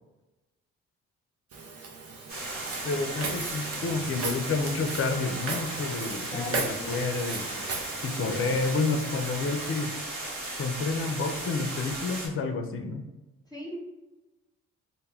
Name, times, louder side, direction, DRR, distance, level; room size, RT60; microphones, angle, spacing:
Walk footsteps, 1.5-9.8, right 4 dB, 45° right, 0.6 m, -38 dB
sound 1, 2.0-10.0, right 2 dB, 90° right, 0.6 m, -48 dB
sound 2, 2.3-12.3, right 2 dB, 70° right, 1.1 m, -36 dB
voice 1, 2.8-7.7 8.0-10.0 10.6-13.0, left 3 dB, 40° left, 6 dB, 0.5 m, -30 dB
voice 2, 6.3-7.0 13.5-13.8, left 1 dB, 10° left, -3 dB, 1.0 m, -38 dB
2.2 x 2.1 x 3.3 m, 1.1 s
hypercardioid pair, 50°, 34 cm